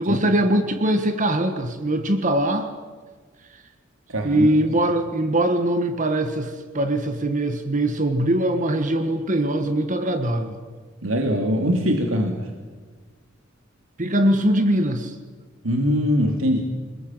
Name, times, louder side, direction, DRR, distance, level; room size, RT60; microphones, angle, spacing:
voice 1, 0.0-2.7 3.5-3.6 4.2-10.6 14.0-15.2, right 1 dB, 40° right, 7 dB, 1.6 m, -22 dB
voice 2, 4.1-4.5 11.0-12.5 15.6-16.6, equal, 85° right, 3 dB, 2.7 m, -22 dB
28.0 x 20.5 x 9.1 m, 1.4 s
head